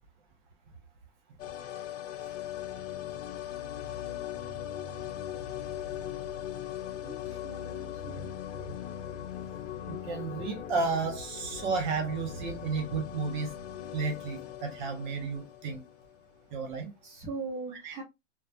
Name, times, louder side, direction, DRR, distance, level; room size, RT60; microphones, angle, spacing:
sound 1, 1.4-16.3 16.5-16.6, left 10 dB, 80° left, 0.6 m, -39 dB
voice 1, 7.0-8.2 17.0-18.0, right 3 dB, 10° right, 0.5 m, -40 dB
voice 2, 9.9-13.5 13.9-15.8 16.5-16.9 17.8-18.0, right 4 dB, 40° right, 0.9 m, -32 dB
3.0 x 2.1 x 2.4 m
supercardioid pair, 165°, 36 cm